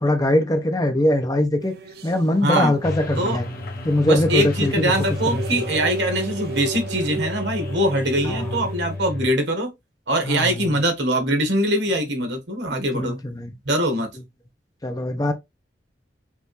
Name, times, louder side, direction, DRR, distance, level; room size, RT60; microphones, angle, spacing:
voice 1, 0.0-1.7 2.0-3.5 3.8-5.6 8.2-8.7 10.2-10.7 12.9-13.5 14.8-15.3, left 1 dB, 20° left, 0.7 m, -22 dB
sound 1, 1.6-9.0, right 3 dB, 60° right, 0.6 m, -35 dB
voice 2, 2.4-2.7 3.2-3.4 4.1-9.7 10.1-13.2 13.6-14.1, right 1 dB, 85° right, 1.3 m, -22 dB
sound 2, 2.8-9.3, left 2 dB, 55° left, 0.9 m, -32 dB
5.4 x 2.6 x 3.1 m
head